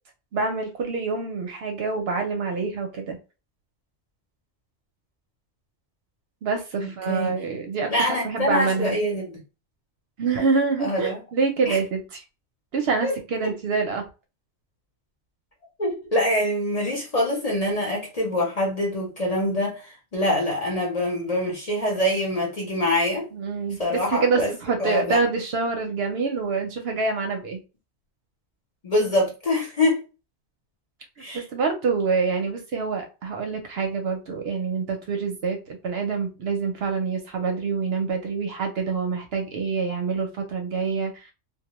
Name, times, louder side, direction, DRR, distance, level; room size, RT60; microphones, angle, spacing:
voice 1, 0.3-3.2 6.4-9.0 10.2-12.2 12.7-14.1 23.3-27.6 31.3-41.3, right 4 dB, 65° right, 0.7 m, -26 dB
voice 2, 6.8-7.4 7.9-9.4 10.8-11.2 11.7-11.8 13.0-13.1 13.4-13.5 15.8-23.3 23.8-24.5 24.8-25.2 28.8-30.0 31.2-31.4, left 1 dB, 40° left, 0.7 m, -25 dB
2.2 x 2.1 x 2.9 m
omnidirectional pair, 1.2 m